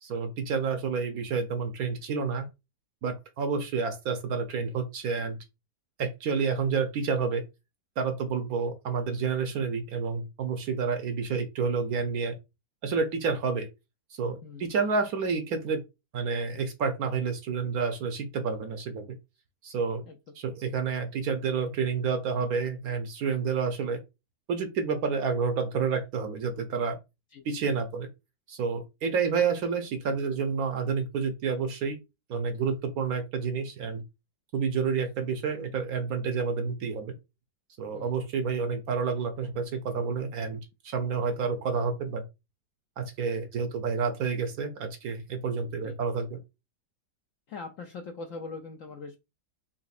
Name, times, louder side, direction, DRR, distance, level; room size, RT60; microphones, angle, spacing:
voice 1, 0.0-2.5 3.0-5.4 6.0-7.4 8.0-12.3 12.8-13.7 14.1-15.8 16.1-19.1 19.6-20.0 20.3-24.0 24.5-27.0 27.4-28.1 28.5-32.0 32.3-34.0 34.5-37.1 37.8-42.2 43.0-46.4, right 5 dB, 65° right, 1.0 m, -29 dB
voice 2, 47.5-49.2, left 4 dB, 70° left, 0.8 m, -41 dB
4.1 x 3.7 x 2.5 m
omnidirectional pair, 1.9 m